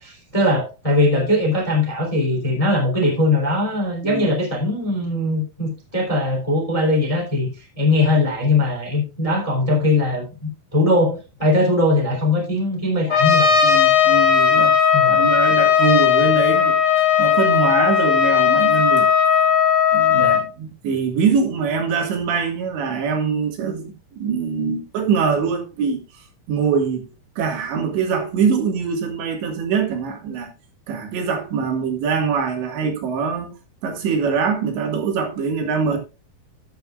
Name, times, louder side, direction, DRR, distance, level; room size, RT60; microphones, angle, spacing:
voice 1, 0.0-13.6 14.9-15.3 20.1-20.4, left 2 dB, 10° left, 2.4 m, -20 dB
Trumpet, 13.1-20.4, left 8 dB, 60° left, 1.7 m, -16 dB
voice 2, 13.6-14.7 15.1-16.8 17.2-19.1 19.9-27.1 27.4-30.5 30.9-33.5 33.8-36.0, right 6 dB, 70° right, 4.0 m, -23 dB
14.0 x 8.0 x 2.4 m
omnidirectional pair, 5.5 m